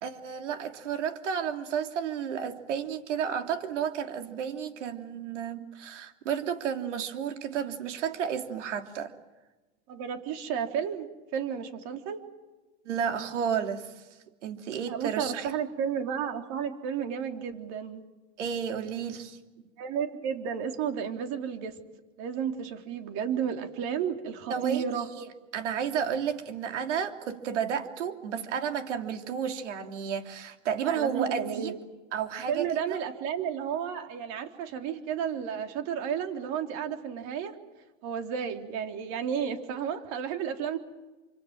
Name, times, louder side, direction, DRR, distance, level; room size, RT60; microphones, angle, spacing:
voice 1, 0.0-9.1 12.8-13.9 14.4-15.5 18.4-19.4 24.5-31.7 32.1-33.0, right 7 dB, 80° right, 6 dB, 3.1 m, -32 dB
voice 2, 9.9-11.1 11.3-12.2 14.9-18.0 19.8-21.8 22.2-25.1 30.9-31.8 32.5-37.6 38.0-40.8, right 8 dB, 50° right, 5 dB, 3.7 m, -32 dB
27.5 x 26.0 x 7.6 m, 1.2 s
supercardioid pair, 125°, 36 cm